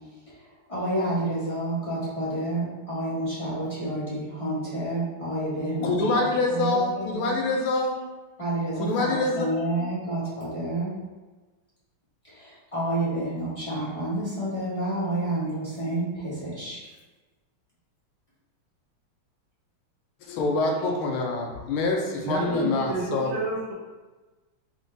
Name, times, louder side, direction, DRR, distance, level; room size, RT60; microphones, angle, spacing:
voice 1, 0.3-7.4 8.4-10.9 12.2-16.8, right 1 dB, 20° left, -11 dB, 1.3 m, -29 dB
voice 2, 5.8-8.1 8.8-9.6 20.3-23.4, left 3 dB, 80° left, 1 dB, 1.5 m, -25 dB
voice 3, 22.2-23.7, right 3 dB, 70° right, -8 dB, 2.3 m, -31 dB
4.7 x 3.6 x 2.6 m, 1.2 s
omnidirectional pair, 2.4 m